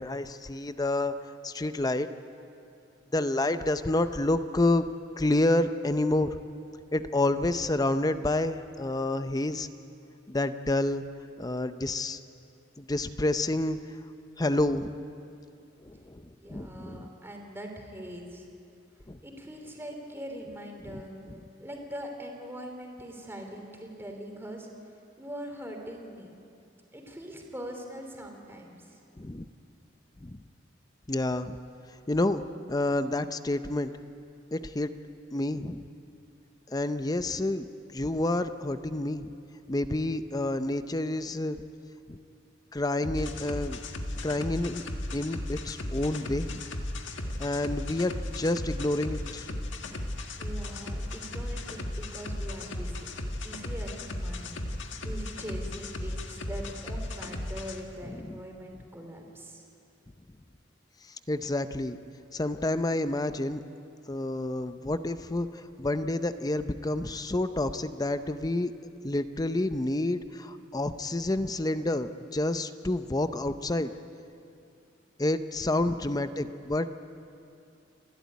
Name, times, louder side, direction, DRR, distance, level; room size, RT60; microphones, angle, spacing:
voice 1, 0.0-2.1 3.1-4.9 5.2-6.4 6.9-9.7 10.3-11.0 11.4-12.2 12.8-13.8 14.4-15.0 15.8-17.1 19.1-19.2 20.9-21.0 29.2-29.5 30.2-30.4 31.1-31.6 32.1-32.4 32.7-33.9 34.5-34.9 35.3-35.9 36.7-39.3 39.7-41.6 42.1-42.2 42.7-43.8 44.2-44.8 45.1-46.6 47.4-49.6 58.0-58.4 61.3-62.0 62.3-63.6 64.1-68.7 69.0-73.9 75.2-76.9, left 2 dB, 20° left, 10 dB, 0.6 m, -29 dB
voice 2, 16.4-18.5 19.2-21.1 21.6-26.3 26.9-29.0 50.3-53.1 53.4-54.6 55.0-59.6 75.6-76.1, equal, 15° right, 2 dB, 3.2 m, -42 dB
sound 1, 43.0-57.8, left 1 dB, 80° left, 1.8 m, -36 dB
29.0 x 12.5 x 9.4 m, 2.5 s
head